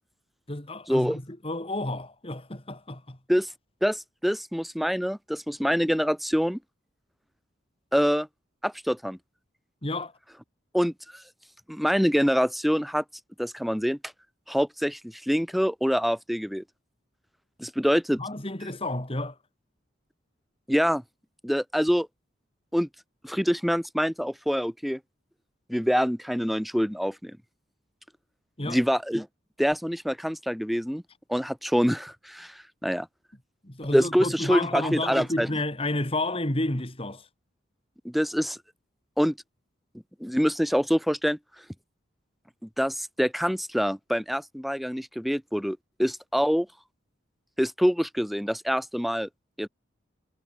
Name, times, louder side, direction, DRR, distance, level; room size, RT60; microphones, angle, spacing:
voice 1, 0.5-3.2 9.8-10.1 18.2-19.4 28.6-28.8 33.6-37.3, left 2 dB, 30° left, 2.7 m, -31 dB
voice 2, 3.8-6.6 7.9-8.3 8.6-9.2 10.7-11.2 11.7-13.0 13.4-14.0 14.5-16.6 17.6-18.2 20.7-21.0 21.4-22.1 22.7-22.9 23.2-25.0 25.7-27.3 28.6-29.3 29.6-31.0 31.3-33.1 33.9-35.5 38.0-38.6 39.2-39.3 40.2-41.4 42.6-46.7 47.6-49.3 49.6-49.7, equal, ahead, 2.8 m, -25 dB
head